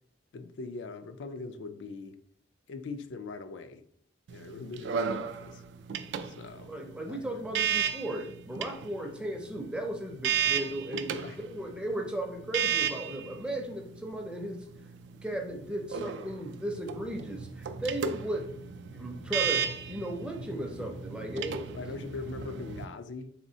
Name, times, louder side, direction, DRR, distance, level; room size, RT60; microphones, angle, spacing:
voice 1, 0.3-2.2 2.7-3.8 4.3-5.6 6.2-6.7 7.1-7.3 11.2-11.4 21.7-23.3, left 4 dB, 80° left, 0.4 m, -41 dB
sound 1, 4.3-22.8, right 7 dB, 70° right, 0.3 m, -35 dB
voice 2, 6.6-14.6 15.2-18.5 18.9-21.7, right 1 dB, 5° right, 0.5 m, -36 dB
4.2 x 3.3 x 2.7 m
head